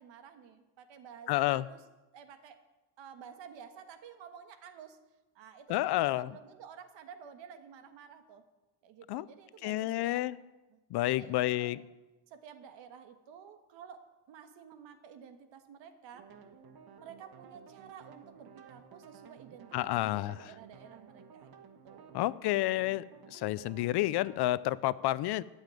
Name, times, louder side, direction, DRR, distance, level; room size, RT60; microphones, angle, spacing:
voice 1, 0.0-1.8 2.1-2.6 3.0-5.0 5.3-8.4 8.8-10.3 10.7-11.7 12.3-16.3 17.0-22.2, right 7 dB, 75° right, 8 dB, 1.5 m, -52 dB
voice 2, 1.3-1.7 5.7-6.3 9.1-9.2 9.6-10.4 10.9-11.8 19.7-20.4 22.1-23.0 23.3-25.4, left 16 dB, 60° left, 18 dB, 0.5 m, -30 dB
sound 1, 16.1-24.5, right 6 dB, 55° right, 1.4 m, -55 dB
13.0 x 7.2 x 9.1 m, 1.1 s
cardioid pair, 160°, 45 cm